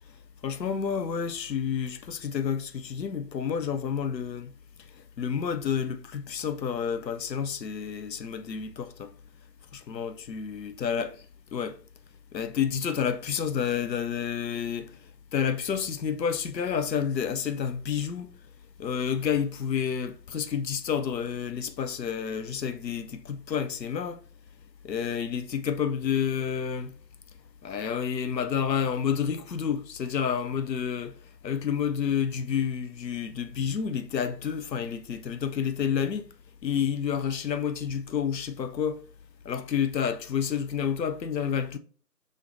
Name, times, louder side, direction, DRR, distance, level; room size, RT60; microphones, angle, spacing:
voice 1, 0.4-4.5 5.2-9.1 9.7-11.1 11.5-11.8 12.3-14.9 15.3-18.3 18.8-24.2 24.8-26.9 27.6-31.1 31.4-36.2 36.6-39.0 39.5-41.8, left 7 dB, 85° left, 0.6 m, -29 dB
5.1 x 3.8 x 2.6 m
figure-of-eight pair, 175°, 49 cm